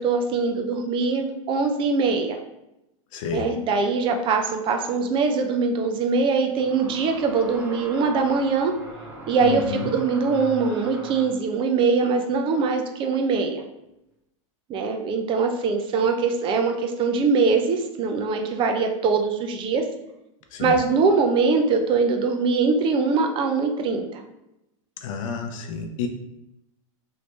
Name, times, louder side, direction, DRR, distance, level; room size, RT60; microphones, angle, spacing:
voice 1, 0.0-2.3 3.3-8.7 9.3-13.6 14.7-19.8 20.6-24.2, right 4 dB, 30° right, 4 dB, 0.5 m, -22 dB
voice 2, 3.1-3.5 9.4-9.9 20.5-20.7 25.0-26.1, left 5 dB, 70° left, 5 dB, 0.6 m, -30 dB
sound 1, 4.6-4.7 6.6-11.4, right 2 dB, 10° right, 0.9 m, -40 dB
3.2 x 2.7 x 3.2 m, 0.89 s
supercardioid pair, 130°, 17 cm